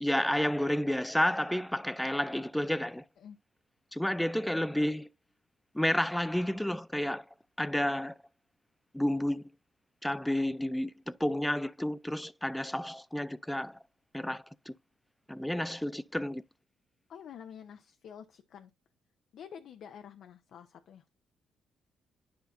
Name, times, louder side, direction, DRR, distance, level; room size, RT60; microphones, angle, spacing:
voice 1, 0.0-3.0 3.9-5.1 5.7-7.3 7.6-8.1 8.9-9.5 10.0-13.8 14.1-14.8 15.3-16.4, left 1 dB, 5° left, 0.4 m, -31 dB
voice 2, 17.1-18.7 19.3-21.0, left 8 dB, 70° left, 0.7 m, -48 dB
10.5 x 5.7 x 2.6 m
cardioid pair, 90°, 0 cm